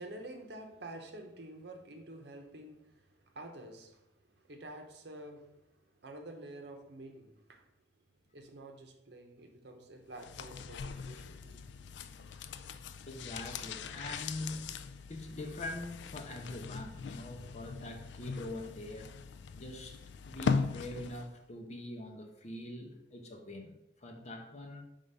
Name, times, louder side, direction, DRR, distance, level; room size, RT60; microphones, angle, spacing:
voice 1, 0.0-7.8 8.3-11.7, right 1 dB, 65° right, 0.9 m, -49 dB
sound 1, 10.2-21.4 21.6-21.7, left 5 dB, 70° left, 0.3 m, -40 dB
voice 2, 13.1-14.8 15.1-19.1 19.5-20.0 20.2-24.8, left 1 dB, 40° left, 0.8 m, -43 dB
5.0 x 3.7 x 5.4 m
head